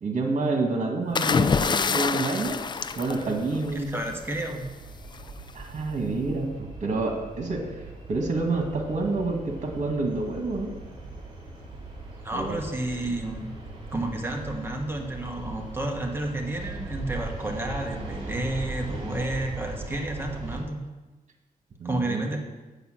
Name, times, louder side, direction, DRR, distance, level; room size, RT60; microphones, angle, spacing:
voice 1, 0.0-2.6 3.0-4.0 5.5-10.7 12.3-12.6 21.8-22.4, right 3 dB, 55° right, 2 dB, 1.9 m, -28 dB
sound 1, 1.1-3.9 5.1-5.4, left 5 dB, 30° left, 0.4 m, -26 dB
sound 2, 2.4-20.6, right 2 dB, 40° right, 3.1 m, -40 dB
voice 2, 3.7-4.6 12.2-13.5 13.9-20.8 21.8-22.4, right 1 dB, 15° right, 2 dB, 1.4 m, -31 dB
8.0 x 7.1 x 6.4 m, 1.2 s
wide cardioid pair, 110°, 14 cm